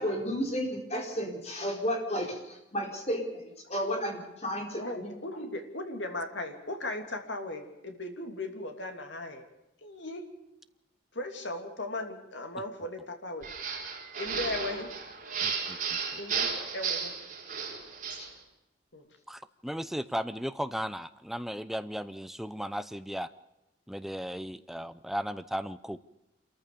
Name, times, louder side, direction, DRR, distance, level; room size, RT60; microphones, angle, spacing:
voice 1, 0.0-2.4 2.7-3.4 3.7-5.1 18.2-18.3, equal, 35° left, 2 dB, 4.3 m, -32 dB
voice 2, 4.8-9.4 9.8-10.3 11.1-13.5 14.2-14.9 16.2-17.1 18.1-18.2 18.9-19.0, left 2 dB, 70° left, 4 dB, 3.0 m, -37 dB
sound 1, 13.4-18.3, right 6 dB, 40° right, 4.7 m, -34 dB
voice 3, 15.4-16.0 19.3-23.3 23.9-26.0, equal, ahead, 12 dB, 0.6 m, -36 dB
27.0 x 14.0 x 6.9 m, 0.91 s
head